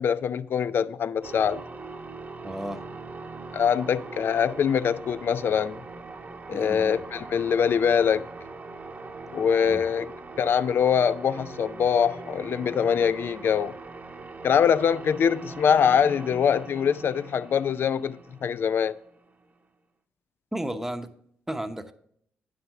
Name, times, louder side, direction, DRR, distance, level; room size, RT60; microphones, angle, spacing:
voice 1, 0.0-1.6 3.5-5.8 6.5-8.3 9.3-10.1 10.4-13.8 14.4-18.9, left 7 dB, 60° left, 0.4 m, -23 dB
sound 1, 1.2-19.5, right 3 dB, 40° right, 0.9 m, -41 dB
voice 2, 2.4-2.9 6.5-7.0 9.6-9.9 20.5-21.1 21.5-21.9, right 1 dB, 10° right, 0.9 m, -33 dB
9.3 x 6.1 x 3.7 m
supercardioid pair, 55°, 4 cm